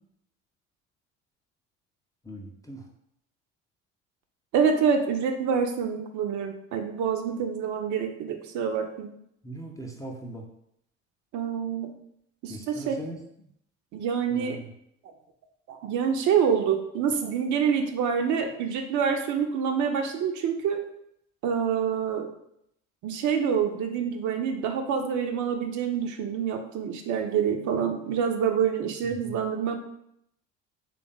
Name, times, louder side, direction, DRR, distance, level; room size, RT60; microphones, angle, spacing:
voice 1, 2.3-2.9 9.4-10.4 12.5-13.2 14.3-14.7 29.2-29.3, right 1 dB, 10° left, 0 dB, 0.5 m, -39 dB
voice 2, 4.5-9.1 11.3-11.9 12.4-13.0 13.9-14.6 15.7-20.8 21.4-22.3 23.0-29.8, right 7 dB, 50° right, 5 dB, 0.6 m, -26 dB
3.2 x 2.5 x 3.8 m, 0.75 s
figure-of-eight pair, 60°, 38 cm